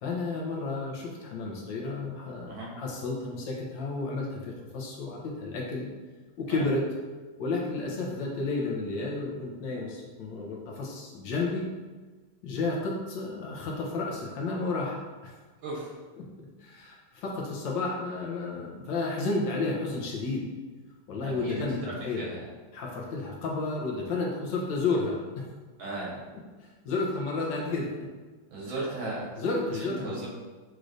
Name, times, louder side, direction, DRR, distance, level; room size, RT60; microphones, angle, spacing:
voice 1, 0.0-5.9 6.4-6.9 7.4-11.7 12.4-15.4 16.2-16.3 16.6-20.5 21.1-22.2 22.7-25.4 26.6-28.1 28.6-28.7 29.4-30.2, left 3 dB, 70° left, -2 dB, 1.4 m, -32 dB
voice 2, 15.6-16.0 21.2-22.4 25.8-26.1 28.5-29.3 29.8-30.3, right 2 dB, 80° right, -5 dB, 2.0 m, -36 dB
6.3 x 3.1 x 2.5 m, 1.3 s
omnidirectional pair, 2.2 m